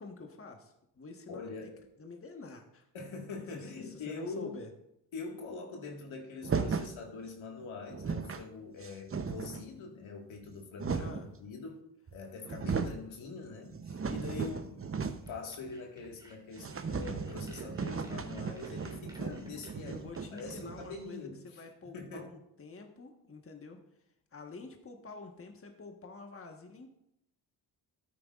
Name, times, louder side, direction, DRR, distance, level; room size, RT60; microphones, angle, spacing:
voice 1, 0.0-1.7 2.0-2.8 3.7-4.7 10.9-11.3 19.8-23.8 24.3-26.9, left 3 dB, 30° left, 3 dB, 1.4 m, -48 dB
voice 2, 1.3-1.8 2.9-4.5 5.1-11.8 12.1-20.0 20.3-22.3, left 4 dB, 75° left, 1 dB, 1.9 m, -44 dB
sound 1, 6.4-7.0 7.6-7.7 7.9-8.5 8.8-9.7 10.4-11.3 12.1-12.2 12.4-13.0 13.5-15.4 15.7-15.8 16.1-16.2 16.6-21.1, right 5 dB, 30° right, 0.8 m, -36 dB
sound 2, 15.2-20.4, right 1 dB, 10° right, 2.4 m, -58 dB
12.5 x 9.2 x 2.5 m, 0.80 s
supercardioid pair, 55°, 47 cm